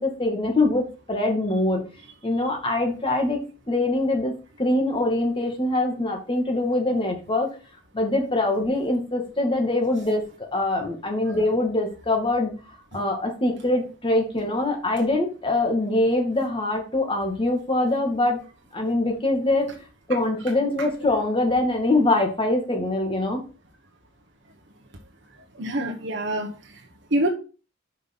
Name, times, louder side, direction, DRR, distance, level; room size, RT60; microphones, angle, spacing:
voice 1, 0.0-1.8 2.2-4.3 4.6-7.5 7.9-10.2 10.5-12.5 12.9-18.4 18.7-19.7 20.1-23.4, left 2 dB, 25° left, 2 dB, 2.0 m, -23 dB
voice 2, 25.5-26.8 27.1-27.3, right 1 dB, 65° right, 1 dB, 1.2 m, -26 dB
5.8 x 5.4 x 5.3 m, 0.35 s
head